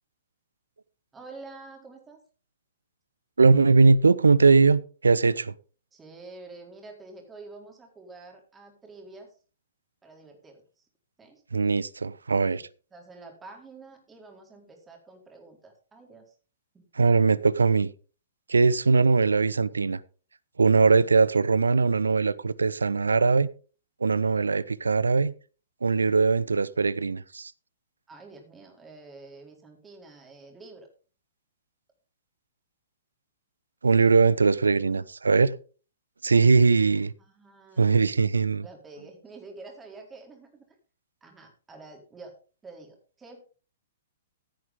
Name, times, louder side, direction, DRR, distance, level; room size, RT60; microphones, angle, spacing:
voice 1, 1.1-2.2 5.9-9.3 10.0-10.9 11.2-11.4 12.4-12.6 12.9-16.4 16.7-16.9 20.8-21.0 28.1-30.9 37.2-38.1 38.6-40.7 41.2-42.4 42.6-43.5, right 3 dB, 15° right, 4.2 m, -48 dB
voice 2, 3.4-5.5 11.5-12.6 17.0-17.9 18.5-20.0 20.6-23.5 24.0-25.3 25.8-27.5 33.8-35.5 36.2-37.1 37.8-38.6, right 4 dB, 75° right, 0.7 m, -21 dB
15.5 x 9.3 x 3.7 m
figure-of-eight pair, 110°, 0 cm